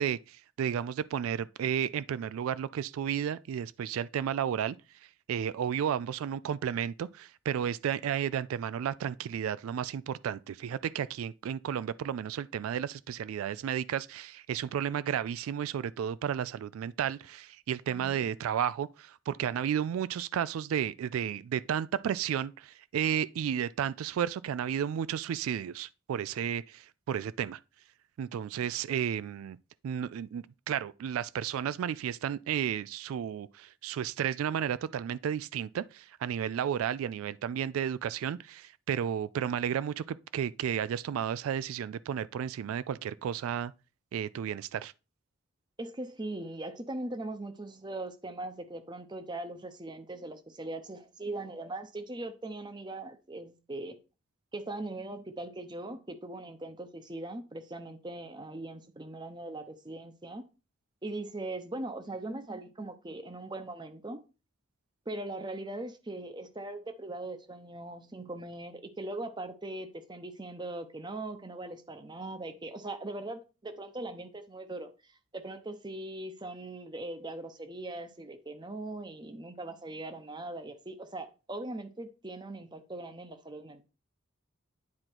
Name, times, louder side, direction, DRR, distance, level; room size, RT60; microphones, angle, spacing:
voice 1, 0.0-4.8 5.3-27.6 28.2-29.6 29.8-43.7 44.1-44.9, right 9 dB, 90° right, 0.3 m, -32 dB
voice 2, 17.9-18.3 45.8-54.0 54.5-60.4 61.0-64.2 65.1-74.9 75.3-83.8, right 2 dB, 20° right, 0.7 m, -40 dB
9.7 x 3.8 x 4.5 m
head